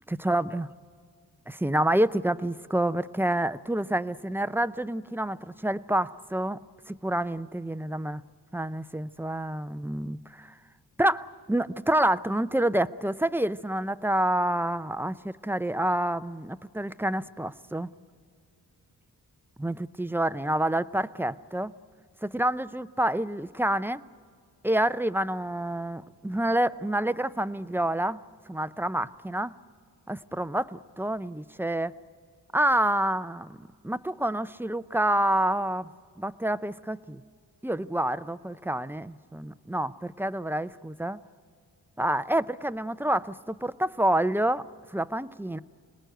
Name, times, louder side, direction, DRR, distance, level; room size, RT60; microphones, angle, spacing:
voice 1, 0.1-0.7 1.5-6.6 6.9-8.2 8.5-10.5 11.0-17.9 19.6-21.7 22.2-24.0 24.6-28.2 28.5-29.5 30.1-31.9 32.5-35.9 36.2-37.2 37.6-41.2 42.0-45.6, right 1 dB, 5° right, 14 dB, 0.5 m, -28 dB
26.5 x 19.5 x 9.2 m, 2.2 s
cardioid pair, 80°, 36 cm